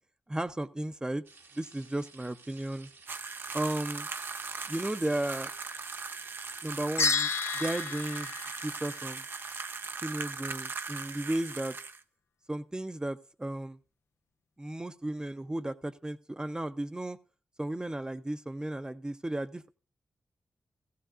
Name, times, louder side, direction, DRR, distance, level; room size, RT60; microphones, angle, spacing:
voice 1, 0.3-1.2 1.6-2.9 3.5-4.1 4.7-5.5 6.6-8.3 8.6-9.2 10.0-11.8 12.5-13.8 14.6-17.2 17.6-19.7, right 1 dB, 15° right, 11 dB, 0.7 m, -34 dB
sound 1, 1.2-9.1, right 4 dB, 75° right, 1.7 m, -55 dB
sound 2, 3.1-12.0, right 4 dB, 55° right, 0.6 m, -39 dB
sound 3, 7.0-9.4, left 5 dB, 80° left, 0.5 m, -32 dB
15.5 x 15.0 x 2.5 m, 0.37 s
cardioid pair, 55°, 4 cm